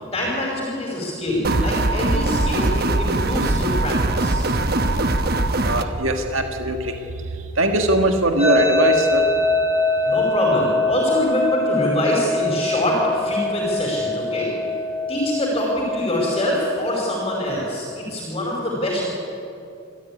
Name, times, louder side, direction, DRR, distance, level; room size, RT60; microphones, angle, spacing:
voice 1, 0.1-4.5 10.0-14.5 15.1-19.1, equal, 25° left, -3 dB, 5.1 m, -24 dB
sound 1, 1.4-5.8, right 2 dB, 45° right, 1.1 m, -21 dB
voice 2, 5.6-9.3, right 2 dB, 75° right, 4 dB, 1.8 m, -21 dB
sound 2, 8.4-17.4, left 3 dB, 5° right, 7.7 m, -23 dB
26.5 x 14.5 x 9.9 m, 2.6 s
head